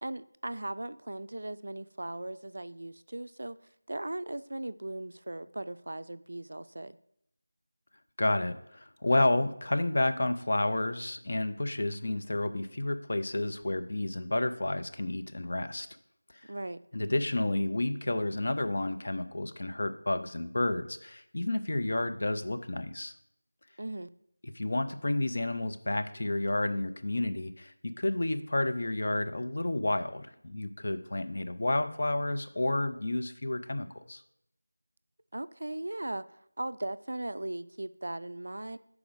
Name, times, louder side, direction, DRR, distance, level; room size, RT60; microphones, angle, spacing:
voice 1, 0.0-3.6 3.9-7.0 16.5-16.8 23.8-24.1 35.3-36.3 36.6-38.8, right 1 dB, 60° right, 14 dB, 0.3 m, -38 dB
voice 2, 8.2-15.9 16.9-23.1 24.4-34.2, left 2 dB, 45° left, 8 dB, 0.5 m, -30 dB
5.1 x 4.8 x 6.2 m, 0.75 s
figure-of-eight pair, 175°, 0 cm